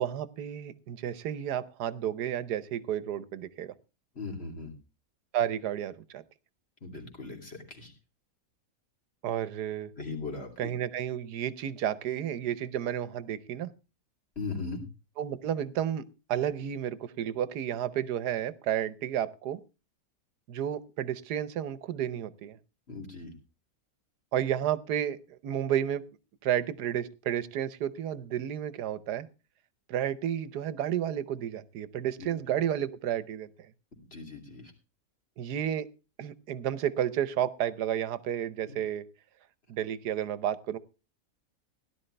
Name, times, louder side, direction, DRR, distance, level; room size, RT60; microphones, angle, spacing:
voice 1, 0.0-3.7 5.3-6.2 9.2-9.9 10.6-13.7 15.2-16.0 16.3-19.6 20.5-22.6 24.3-26.0 26.4-29.3 29.9-33.5 35.4-35.9 36.2-39.0 39.7-40.8, right 10 dB, 85° right, 16 dB, 1.4 m, -31 dB
voice 2, 4.1-4.7 6.8-7.9 10.0-10.7 14.4-14.8 22.9-23.3 32.2-32.3 34.0-34.7 38.7-38.8, left 4 dB, 40° left, 2 dB, 3.2 m, -39 dB
17.0 x 11.5 x 3.3 m, 0.30 s
omnidirectional pair, 1.7 m